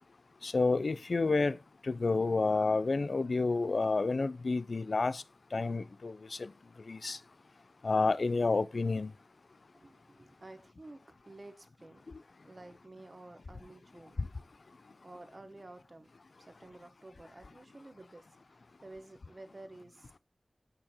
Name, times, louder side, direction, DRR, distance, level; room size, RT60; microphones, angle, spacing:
voice 1, 0.4-1.6 1.8-5.2 5.5-6.5 6.9-7.2 7.8-9.1, left 3 dB, 75° left, 0.3 m, -29 dB
voice 2, 9.7-12.0 12.4-14.2 14.7-16.1 16.4-20.2, right 2 dB, 45° right, 0.9 m, -52 dB
6.7 x 5.9 x 2.8 m
cardioid pair, 45°, 0 cm